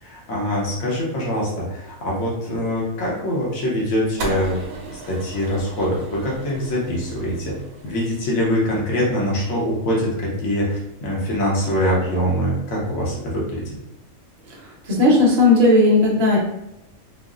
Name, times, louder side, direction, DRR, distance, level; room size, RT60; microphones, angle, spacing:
voice 1, 0.0-4.6 4.9-7.5 7.8-13.8, equal, 75° left, -5 dB, 1.3 m, -23 dB
sound 1, 4.2-10.5, right 2 dB, 85° right, 1.0 m, -37 dB
voice 2, 14.5-16.4, left 2 dB, 55° right, -3 dB, 1.0 m, -16 dB
3.8 x 2.1 x 2.4 m, 0.86 s
omnidirectional pair, 1.4 m